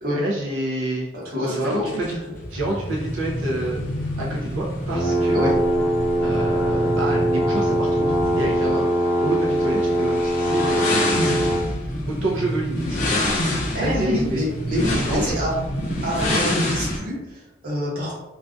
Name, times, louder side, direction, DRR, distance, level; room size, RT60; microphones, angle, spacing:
voice 1, 0.1-1.1 1.4-2.2 2.5-3.8 4.2-5.4 6.2-8.9 9.2-10.9 12.1-13.0 13.7-14.5 14.9-15.3, right 1 dB, 90° right, -3 dB, 0.5 m, -28 dB
voice 2, 1.1-2.4 5.3-5.6 13.7-15.6 16.0-18.1, equal, 45° right, -6 dB, 0.9 m, -27 dB
sound 1, 1.6-17.0, left 1 dB, 40° left, 0.5 m, -27 dB
sound 2, 4.9-11.7, right 1 dB, 85° left, 0.6 m, -22 dB
2.3 x 2.2 x 2.4 m, 0.98 s
head